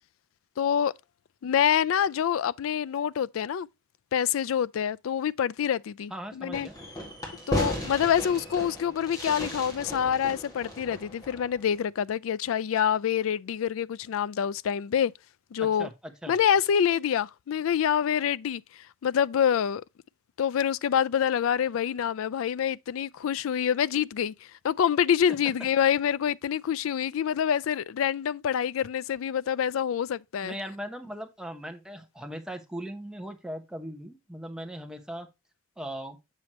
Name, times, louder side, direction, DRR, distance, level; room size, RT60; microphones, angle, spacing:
voice 1, 0.6-0.9 1.4-3.7 4.1-6.7 7.5-15.1 15.5-15.9 16.3-18.6 19.0-19.8 20.4-24.3 24.6-30.5, left 8 dB, 85° left, 0.3 m, -26 dB
voice 2, 6.1-6.7 15.6-16.4 30.4-35.3 35.8-36.2, equal, 5° right, 1.0 m, -39 dB
Fireworks, 6.5-11.7, equal, 20° left, 1.9 m, -35 dB
7.5 x 6.2 x 3.0 m
head